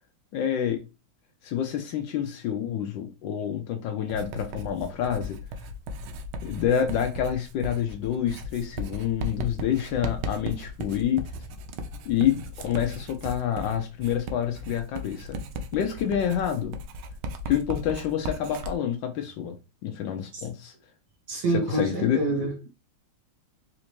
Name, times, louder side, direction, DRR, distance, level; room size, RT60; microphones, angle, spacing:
voice 1, 0.3-0.8 1.4-5.4 6.4-11.3 12.1-15.4 15.7-16.8 17.5-19.6 19.8-20.7 21.5-22.2, left 9 dB, 75° left, 1.2 m, -28 dB
Writing, 4.1-18.7, equal, 90° right, 1.5 m, -36 dB
voice 2, 21.3-22.7, right 2 dB, 65° right, 1.1 m, -27 dB
4.2 x 2.6 x 2.9 m
omnidirectional pair, 2.3 m